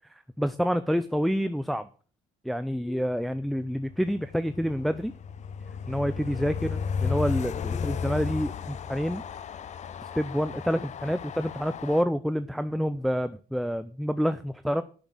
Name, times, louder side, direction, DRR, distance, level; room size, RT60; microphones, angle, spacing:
voice 1, 0.4-1.9 2.4-5.1 5.9-9.2 10.2-14.8, equal, ahead, 12 dB, 0.5 m, -28 dB
Train, 3.6-12.0, left 6 dB, 45° left, 0.8 m, -34 dB
10.5 x 6.2 x 7.7 m, 0.40 s
cardioid pair, 110°, 17 cm